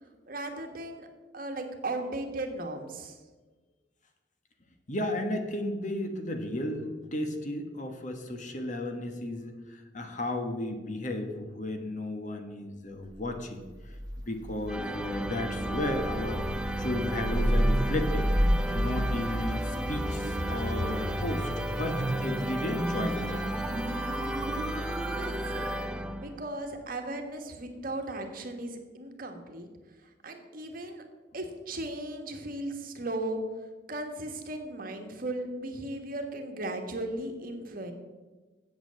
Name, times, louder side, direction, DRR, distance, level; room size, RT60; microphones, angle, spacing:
voice 1, 0.3-1.1 1.3-3.2 24.7-25.7 26.2-29.7 30.0-31.0 31.3-37.9, right 1 dB, 50° right, 5 dB, 1.5 m, -37 dB
voice 2, 4.9-13.7 14.2-16.5 16.8-18.3 18.7-23.5, left 1 dB, 45° left, 5 dB, 1.3 m, -34 dB
sound 1, 13.7-25.9, equal, 25° right, 2.1 m, -32 dB
sound 2, 14.7-26.6, right 1 dB, 5° right, 0.4 m, -34 dB
8.1 x 8.0 x 7.6 m, 1.2 s
head